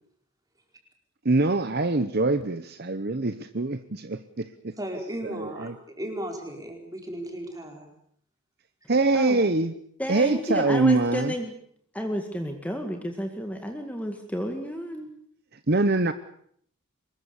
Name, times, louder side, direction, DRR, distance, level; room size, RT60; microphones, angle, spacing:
voice 1, 1.2-4.7 5.2-5.7 8.9-9.7 10.1-11.3 15.7-16.1, right 2 dB, 45° right, 11 dB, 0.9 m, -24 dB
voice 2, 4.8-5.7 6.0-7.9, right 1 dB, 15° right, 2 dB, 4.8 m, -35 dB
voice 3, 10.0-11.5 11.9-15.1, equal, 5° left, 4 dB, 2.0 m, -31 dB
24.5 x 21.0 x 7.1 m, 0.64 s
head